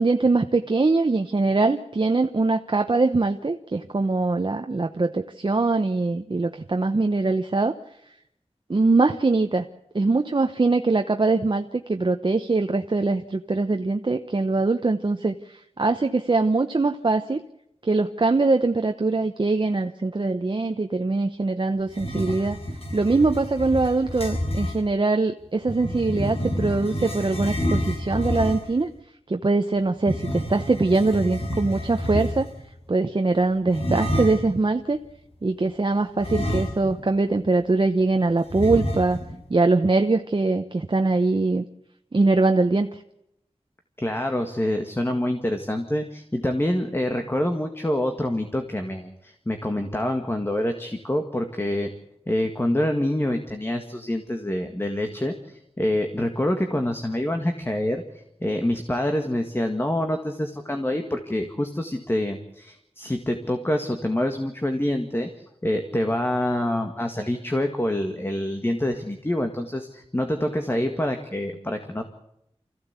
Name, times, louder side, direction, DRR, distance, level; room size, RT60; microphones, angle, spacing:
voice 1, 0.0-7.8 8.7-9.7 9.9-17.4 17.8-22.6 22.9-28.9 29.3-32.5 32.9-35.0 35.4-39.2 39.5-41.6 42.1-43.0, right 3 dB, 45° right, 6 dB, 1.0 m, -22 dB
sound 1, 21.9-24.8 25.6-28.8 30.0-32.6 33.7-34.6 36.2-37.1 37.4-37.5 38.5-39.4, equal, 60° left, 6.1 m, -29 dB
voice 2, 44.0-51.9 52.3-72.0, left 1 dB, 20° left, 5 dB, 1.9 m, -26 dB
25.0 x 15.5 x 8.3 m, 0.78 s
wide cardioid pair, 75°, 11 cm